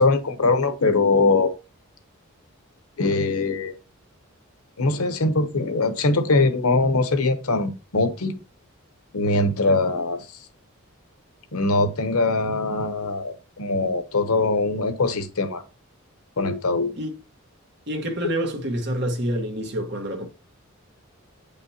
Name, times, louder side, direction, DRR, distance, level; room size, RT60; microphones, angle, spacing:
voice 1, 0.0-1.5 3.0-3.7 4.8-8.4 9.1-10.2 11.5-15.6 16.4-16.9, left 3 dB, 90° left, 0.9 m, -22 dB
voice 2, 17.9-20.3, equal, 50° right, 1.5 m, -27 dB
8.5 x 5.3 x 2.9 m
head